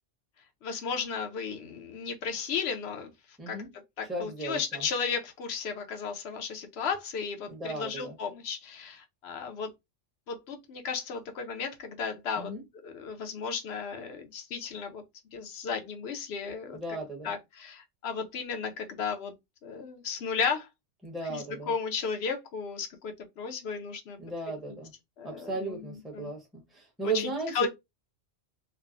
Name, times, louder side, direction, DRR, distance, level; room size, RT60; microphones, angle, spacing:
voice 1, 0.6-3.1 3.5-3.6 4.0-9.7 10.3-12.5 12.8-15.0 15.3-16.8 17.2-19.3 19.6-20.7 21.3-24.2 24.5-24.6 25.2-26.3 27.0-27.3 27.5-27.7, left 6 dB, 60° left, 0.8 m, -34 dB
voice 2, 4.1-4.9 7.5-8.1 12.4-12.6 16.7-17.3 21.0-21.7 24.2-24.9 25.2-27.7, right 3 dB, ahead, 0.7 m, -36 dB
3.2 x 2.1 x 2.4 m
omnidirectional pair, 1.3 m